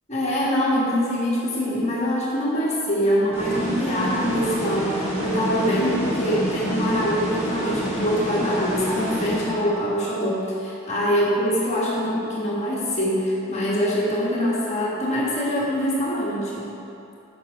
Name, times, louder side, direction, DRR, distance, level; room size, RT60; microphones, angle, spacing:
voice 1, 0.1-16.7, equal, 30° left, -7 dB, 1.5 m, -24 dB
sound 1, 3.3-9.9, equal, 10° right, 1.3 m, -28 dB
7.6 x 6.0 x 3.9 m, 2.8 s
head